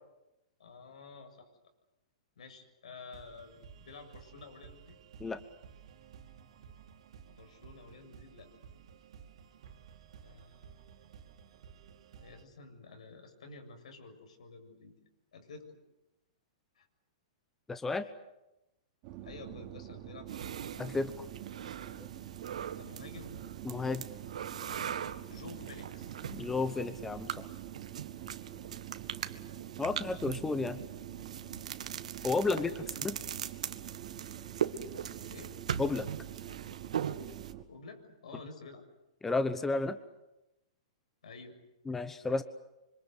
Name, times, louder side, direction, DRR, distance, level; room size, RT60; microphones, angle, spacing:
voice 1, 0.6-1.5 2.4-5.0 7.3-8.5 10.2-10.8 12.2-14.9 15.3-15.8 16.8-16.9 19.2-20.6 22.8-23.4 25.3-26.2 28.5-28.7 32.5-33.0 35.2-35.6 37.7-38.8 41.2-41.6, left 3 dB, 85° left, 6 dB, 7.0 m, -50 dB
sound 1, 3.1-12.4, right 7 dB, 65° right, 3.2 m, -55 dB
voice 2, 17.7-18.0 20.8-21.3 23.6-24.0 26.3-27.5 29.8-30.8 32.2-32.7 33.0-33.2 35.8-36.1 39.2-40.0 41.9-42.4, left 3 dB, 10° left, 11 dB, 1.0 m, -32 dB
sound 2, 19.0-37.6, right 13 dB, 35° right, 2.7 m, -46 dB
sound 3, 20.3-37.5, right 8 dB, 85° right, 1.8 m, -41 dB
26.5 x 25.5 x 8.2 m, 0.94 s
hypercardioid pair, 155°, 4 cm